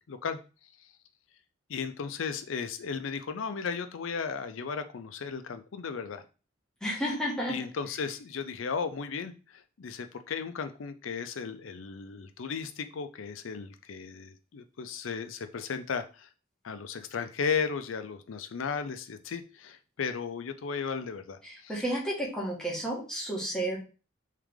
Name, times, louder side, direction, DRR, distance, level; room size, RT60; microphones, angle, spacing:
voice 1, 0.1-0.9 1.7-6.2 6.9-7.0 7.5-16.3 16.6-21.8, left 5 dB, 75° left, 9 dB, 0.5 m, -35 dB
voice 2, 6.8-7.5 21.7-23.8, right 1 dB, 5° left, -5 dB, 1.4 m, -31 dB
3.7 x 3.3 x 3.5 m, 0.34 s
head